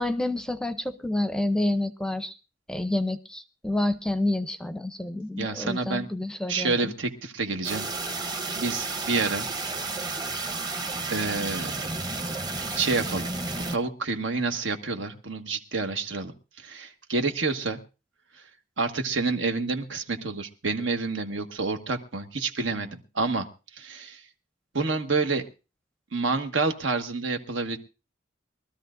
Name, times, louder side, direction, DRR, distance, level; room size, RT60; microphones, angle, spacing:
voice 1, 0.0-2.4 2.7-6.8, left 1 dB, 5° left, 10 dB, 0.6 m, -28 dB
voice 2, 5.4-6.1 6.5-7.9 8.5-9.5 11.1-11.7 12.7-13.3 13.7-16.3 16.6-17.8 18.8-22.9 23.1-23.5 23.7-24.2 24.7-25.4 26.1-27.8, right 3 dB, 85° right, 5 dB, 1.4 m, -28 dB
sound 1, 7.6-13.8, right 3 dB, 20° right, 0.8 m, -32 dB
22.5 x 13.0 x 2.6 m, 0.31 s
head